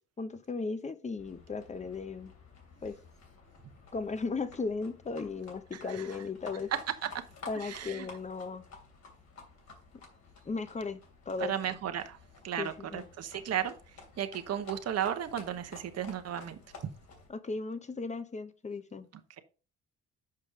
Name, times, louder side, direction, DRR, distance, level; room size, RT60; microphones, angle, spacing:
voice 1, 0.2-2.3 2.8-3.0 3.9-6.7 7.5-8.6 10.5-11.0 11.3-11.5 12.6-13.1 17.3-19.1, left 4 dB, 25° left, 0.9 m, -36 dB
Livestock farm animals working animals, 1.2-17.3, left 4 dB, 65° left, 2.9 m, -53 dB
voice 2, 7.5-8.1 11.5-12.2 12.4-13.7 14.2-16.6, right 9 dB, 55° right, 1.1 m, -34 dB
6.9 x 5.3 x 4.9 m
cardioid pair, 90°, 30 cm